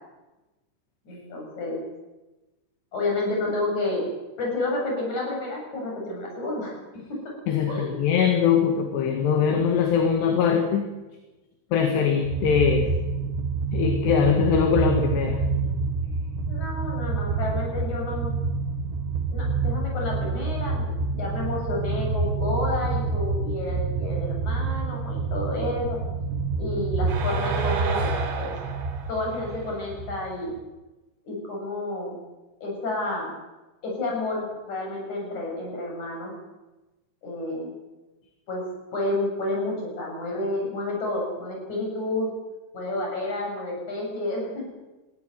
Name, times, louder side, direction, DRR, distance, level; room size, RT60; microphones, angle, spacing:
voice 1, 1.1-1.8 2.9-4.1 4.4-6.8 7.1-7.2 7.7-8.0 16.5-18.3 19.3-26.0 26.6-28.6 29.1-30.5 31.3-32.2 32.6-33.3 33.8-36.3 37.2-37.7 38.5-38.7 38.9-42.3 42.7-44.7, left 2 dB, 35° left, -1 dB, 8.6 m, -30 dB
voice 2, 7.5-10.8 11.7-12.9 13.7-15.4, left 7 dB, 65° left, 4 dB, 3.9 m, -22 dB
sound 1, 12.2-30.6, right 4 dB, 65° right, 4.2 m, -27 dB
21.5 x 16.5 x 9.5 m, 1.1 s
omnidirectional pair, 5.6 m